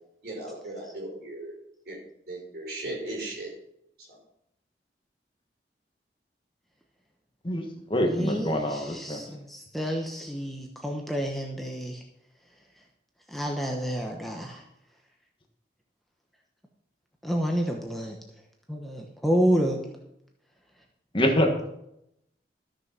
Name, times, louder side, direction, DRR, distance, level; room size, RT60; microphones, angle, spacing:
voice 1, 0.2-1.5 1.9-2.0 2.3-3.5, right 2 dB, 60° right, -3 dB, 5.1 m, -36 dB
voice 2, 7.4-9.2 21.1-21.5, equal, 30° left, 3 dB, 1.3 m, -25 dB
voice 3, 8.0-12.0 13.3-14.6 17.2-18.2 18.7-19.8, equal, ahead, 1 dB, 1.0 m, -29 dB
13.5 x 6.4 x 6.0 m, 0.79 s
head